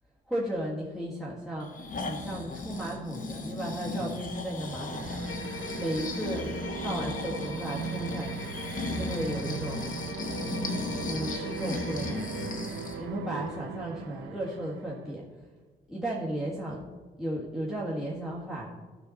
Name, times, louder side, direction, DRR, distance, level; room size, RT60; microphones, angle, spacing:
voice 1, 0.3-8.5 9.0-9.9 11.1-15.2 15.9-16.8 17.2-18.7, right 1 dB, ahead, -6 dB, 1.7 m, -35 dB
Breathing, 1.6-13.0 13.5-13.6, left 3 dB, 40° left, 1.3 m, -36 dB
sound 1, 4.6-15.1, right 6 dB, 65° right, 0.7 m, -39 dB
sound 2, 5.3-12.6, left 5 dB, 75° left, 0.9 m, -42 dB
13.0 x 5.7 x 4.1 m, 1.3 s
cardioid pair, 90°, 20 cm